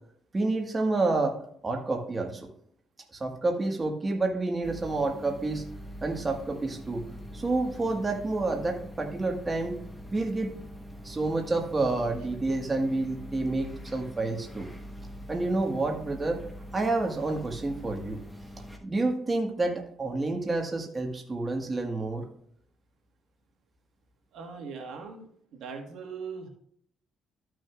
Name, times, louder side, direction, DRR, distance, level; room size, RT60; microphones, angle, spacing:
voice 1, 0.3-1.4 1.6-2.5 3.2-5.6 6.0-7.0 7.3-9.8 10.1-10.5 11.0-14.7 15.3-16.4 16.7-18.2 18.8-22.3, right 2 dB, 25° right, 2 dB, 1.5 m, -29 dB
sound 1, 4.6-18.8, equal, 5° left, 1.2 m, -44 dB
voice 2, 24.3-26.5, right 5 dB, 80° right, 3 dB, 1.4 m, -40 dB
13.0 x 6.3 x 2.4 m, 0.64 s
cardioid pair, 90°, 0 cm